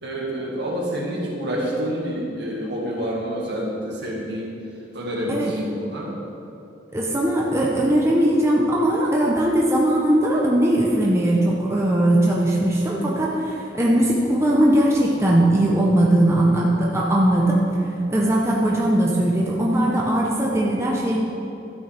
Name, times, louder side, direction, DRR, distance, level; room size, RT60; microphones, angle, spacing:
voice 1, 0.0-4.5 4.9-6.2, equal, 65° right, -3 dB, 2.1 m, -28 dB
voice 2, 6.9-17.6 18.1-21.2, right 1 dB, 15° right, -4 dB, 0.9 m, -19 dB
12.0 x 8.4 x 3.5 m, 2.9 s
head